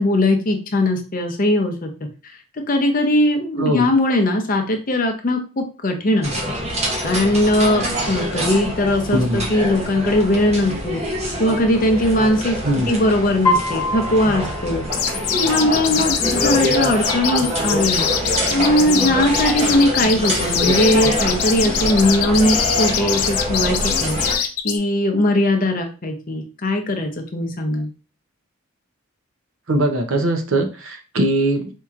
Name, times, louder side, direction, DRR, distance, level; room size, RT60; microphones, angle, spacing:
voice 1, 0.0-1.9 2.7-6.3 7.0-11.0 11.4-12.6 12.9-14.9 15.3-18.1 18.5-27.9, left 1 dB, 40° left, 4 dB, 0.6 m, -19 dB
voice 2, 3.6-3.9 9.1-9.5 12.6-12.9 29.7-31.7, right 1 dB, 65° right, 4 dB, 0.7 m, -20 dB
sound 1, 6.2-24.4, equal, 30° right, 0.7 m, -25 dB
Piano, 13.4-15.5, left 2 dB, 15° left, 1.0 m, -24 dB
sound 2, 14.9-24.8, left 8 dB, 85° left, 0.5 m, -23 dB
4.4 x 2.8 x 2.4 m, 0.35 s
head